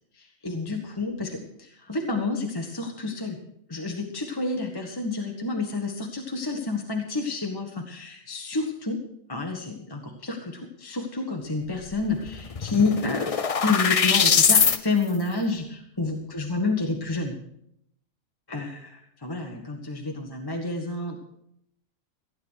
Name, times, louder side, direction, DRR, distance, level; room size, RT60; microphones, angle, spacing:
voice 1, 0.1-3.4 3.7-9.0 9.3-17.4 18.5-21.2, left 3 dB, 15° left, 2 dB, 1.3 m, -29 dB
sound 1, 11.9-12.0 12.3-14.8, left 6 dB, 55° left, 0.4 m, -21 dB
15.5 x 9.6 x 6.4 m, 0.76 s
omnidirectional pair, 1.5 m